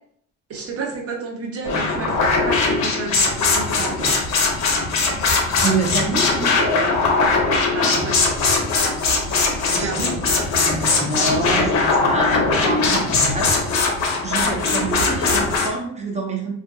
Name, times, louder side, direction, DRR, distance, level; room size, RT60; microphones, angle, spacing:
voice 1, 0.5-4.3 7.7-8.2 9.7-10.2, right 4 dB, 50° right, 0 dB, 0.8 m, -30 dB
sound 1, 1.6-15.7, left 3 dB, 65° left, 0.7 m, -20 dB
voice 2, 5.6-6.7 9.7-10.0 10.6-13.0 13.3-13.5 14.2-16.5, right 3 dB, 25° right, 1 dB, 0.6 m, -26 dB
2.5 x 2.5 x 2.3 m, 0.65 s
cardioid pair, 90°, 30 cm